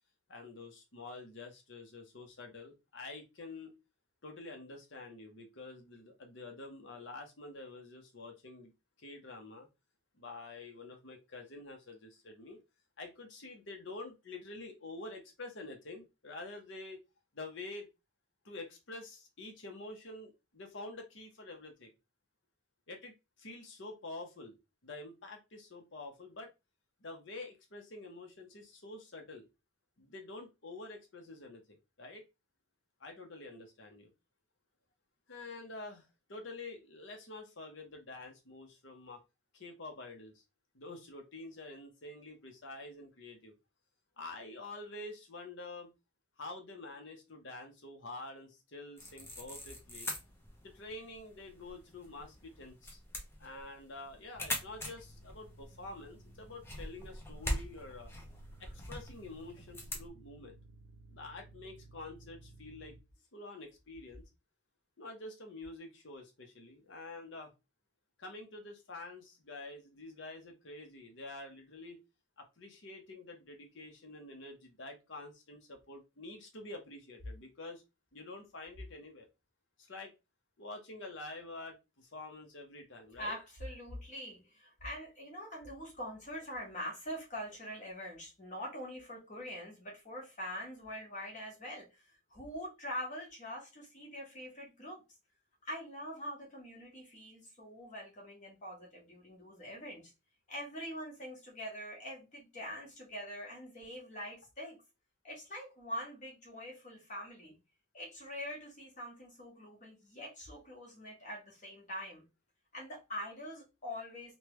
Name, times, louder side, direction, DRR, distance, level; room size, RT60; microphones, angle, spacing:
voice 1, 0.3-3.8 4.2-8.7 9.0-9.7 10.1-12.6 13.0-17.0 17.3-17.9 18.4-21.9 22.9-24.5 24.8-26.5 27.0-29.5 30.0-32.2 33.0-34.1 35.3-39.2 39.5-40.4 40.7-43.5 44.2-45.9 46.4-50.1 50.6-53.0 53.4-58.1 58.6-60.6 61.1-63.0 63.3-64.3 65.0-67.5 68.2-72.0 72.4-77.8 78.1-79.3 79.8-80.1 80.6-83.4, left 2 dB, 55° left, 0.8 m, -48 dB
sound 1, 49.0-60.1, left 1 dB, 10° left, 0.5 m, -43 dB
sound 2, 54.3-63.0, right 2 dB, 90° right, 0.5 m, -57 dB
voice 2, 83.2-95.0 95.6-100.1 100.5-104.8 105.2-107.6 107.9-112.2 112.7-114.4, equal, 35° left, 1.3 m, -44 dB
3.2 x 2.3 x 3.0 m
head